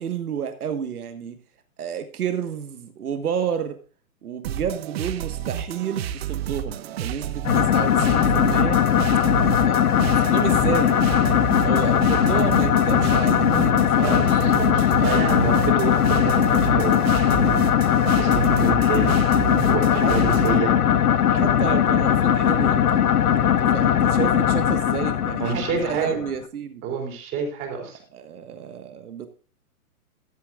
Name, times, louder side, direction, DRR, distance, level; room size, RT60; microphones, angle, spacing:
voice 1, 0.0-1.4 1.8-3.8 4.2-8.8 9.4-11.3 11.6-14.2 19.9-20.2 21.3-23.0 23.4-26.8 28.1-29.3, right 8 dB, 85° right, 8 dB, 1.4 m, -31 dB
sound 1, 4.4-20.6, right 9 dB, 45° right, 0.7 m, -30 dB
sound 2, 7.4-26.3, left 9 dB, 90° left, 1.1 m, -19 dB
voice 2, 14.0-17.5 17.8-19.2 19.6-20.7 25.4-26.1 26.8-28.0, right 5 dB, 25° right, 2 dB, 3.9 m, -28 dB
14.0 x 11.0 x 2.4 m, 0.39 s
hypercardioid pair, 155°, 44 cm